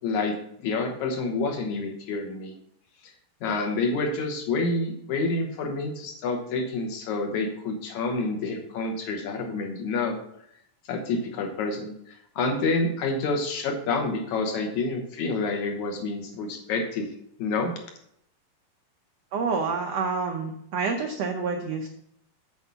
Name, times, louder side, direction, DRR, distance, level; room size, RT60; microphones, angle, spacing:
voice 1, 0.0-2.5 3.0-3.1 3.4-10.2 10.9-17.1 17.4-17.7, left 3 dB, 65° left, 3 dB, 2.2 m, -28 dB
voice 2, 19.3-21.9, right 4 dB, 80° right, 3 dB, 1.4 m, -28 dB
8.4 x 4.7 x 6.8 m, 0.72 s
omnidirectional pair, 3.9 m